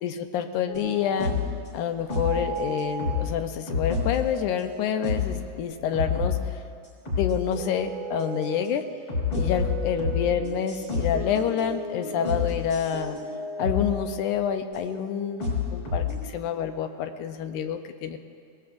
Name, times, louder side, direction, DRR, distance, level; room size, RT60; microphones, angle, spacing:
voice 1, 0.0-1.4 1.7-6.6 7.2-8.9 9.3-13.2 13.6-18.2, left 8 dB, 85° left, 7 dB, 2.1 m, -28 dB
sound 1, 0.7-1.6 2.1-3.4 3.7-5.4 5.7-6.7 7.1-8.7 9.1-14.0 14.7-16.2, left 4 dB, 50° left, 6.4 m, -30 dB
24.5 x 19.0 x 2.6 m, 2.2 s
omnidirectional pair, 3.5 m